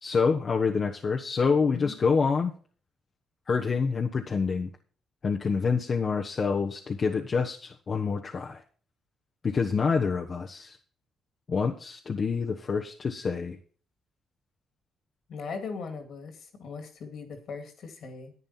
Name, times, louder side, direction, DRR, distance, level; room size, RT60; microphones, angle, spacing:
voice 1, 0.0-2.5 3.5-4.7 5.2-8.6 9.4-10.8 11.5-13.6, left 5 dB, 45° left, 1 dB, 1.1 m, -27 dB
voice 2, 15.3-18.3, left 4 dB, 65° left, 7 dB, 2.4 m, -39 dB
11.0 x 9.0 x 4.3 m, 0.41 s
supercardioid pair, 65°, 0 cm